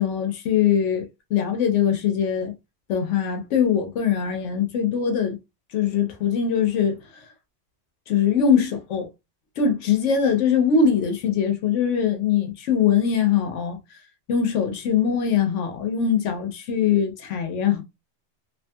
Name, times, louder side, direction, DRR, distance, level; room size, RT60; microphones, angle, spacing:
voice 1, 0.0-2.5 2.9-5.4 5.7-7.2 8.1-9.1 9.6-13.8 14.3-17.8, left 7 dB, 80° left, 0.9 m, -22 dB
2.9 x 2.6 x 2.2 m
omnidirectional pair, 1.2 m